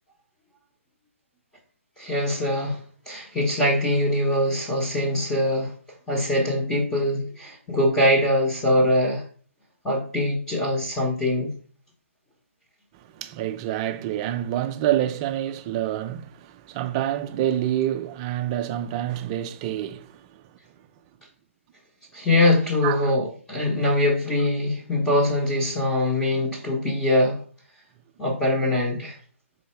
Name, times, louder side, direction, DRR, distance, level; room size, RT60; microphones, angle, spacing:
voice 1, 2.0-2.8 3.1-5.7 6.1-9.2 9.8-11.5 22.1-27.4 28.2-29.2, left 1 dB, 10° left, 0.9 m, -23 dB
voice 2, 12.9-20.6 22.8-23.1, right 12 dB, 25° right, 0.4 m, -27 dB
4.1 x 2.7 x 4.4 m
hypercardioid pair, 140°, 7 cm